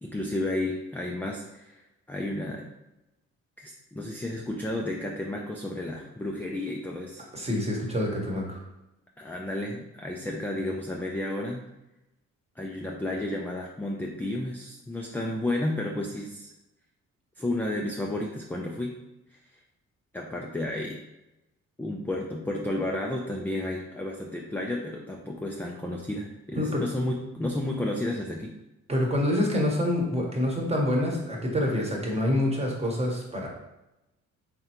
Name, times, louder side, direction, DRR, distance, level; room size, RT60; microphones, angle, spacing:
voice 1, 0.0-2.7 3.6-7.3 9.2-11.6 12.6-16.5 17.4-19.0 19.3-19.4 20.1-21.0 21.8-28.5, left 1 dB, 5° left, -1 dB, 0.4 m, -32 dB
voice 2, 7.3-8.6 26.6-26.7 28.9-33.5, left 1 dB, 20° right, -1 dB, 1.0 m, -26 dB
3.7 x 3.3 x 2.9 m, 0.95 s
cardioid pair, 90°, 30 cm